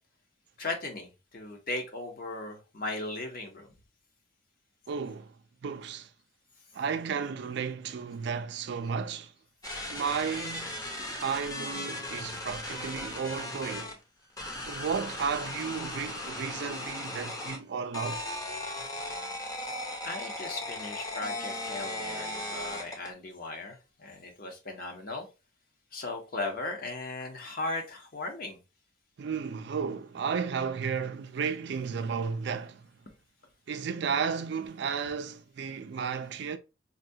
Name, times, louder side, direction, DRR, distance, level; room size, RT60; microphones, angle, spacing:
voice 1, 0.6-3.7 19.5-19.8 20.0-25.3 25.9-28.6, left 2 dB, 50° left, 0.9 m, -37 dB
voice 2, 4.9-5.3 5.6-6.1 6.7-9.3 9.9-10.7 11.1-14.0 14.7-18.3 29.2-32.9 33.7-36.6, right 6 dB, 65° right, 0.4 m, -33 dB
sound 1, 9.6-13.9 14.4-17.6 17.9-23.1, left 1 dB, 20° left, 0.7 m, -37 dB
4.0 x 2.3 x 2.7 m
head